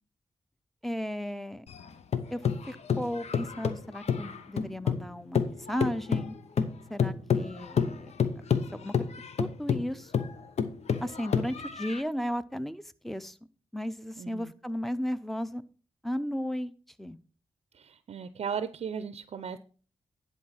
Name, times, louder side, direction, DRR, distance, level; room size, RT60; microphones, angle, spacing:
voice 1, 0.8-1.7 2.3-2.4 2.7-6.4 6.9-8.1 8.7-8.9 9.4-10.1 11.0-13.4 13.7-15.6 16.0-16.7 17.0-17.2, equal, ahead, 13 dB, 0.7 m, -34 dB
sound 1, 1.7-5.1 5.3-12.0, left 7 dB, 75° left, 0.8 m, -29 dB
voice 2, 14.2-14.5 17.7-19.6, right 7 dB, 70° right, 13 dB, 0.5 m, -36 dB
10.5 x 4.5 x 5.7 m, 0.39 s
cardioid pair, 60°, 11 cm